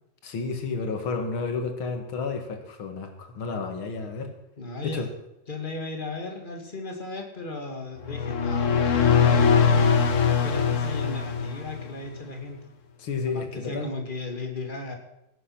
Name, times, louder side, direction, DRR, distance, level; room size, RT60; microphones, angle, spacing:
voice 1, 0.2-4.3 4.8-5.1 13.0-13.9, left 4 dB, 85° left, 6 dB, 2.7 m, -31 dB
voice 2, 4.6-5.0 5.5-12.6 13.3-14.9, left 2 dB, 25° left, 3 dB, 2.3 m, -36 dB
sound 1, 8.0-11.9, left 6 dB, 45° left, 1.2 m, -21 dB
17.0 x 9.7 x 5.9 m, 0.86 s
omnidirectional pair, 2.2 m